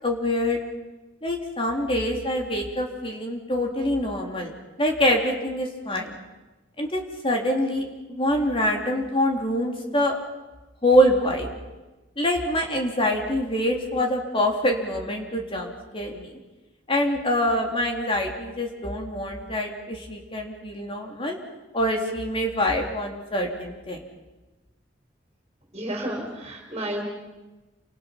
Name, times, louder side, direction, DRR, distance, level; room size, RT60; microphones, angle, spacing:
voice 1, 0.0-0.6 1.2-4.5 4.8-6.2 6.8-7.8 8.1-10.1 10.8-11.5 12.2-16.3 16.9-21.4 21.7-24.0, left 1 dB, 30° left, 1 dB, 3.6 m, -25 dB
voice 2, 25.7-27.0, right 1 dB, 30° right, -1 dB, 4.8 m, -31 dB
29.5 x 26.5 x 6.0 m, 1.1 s
head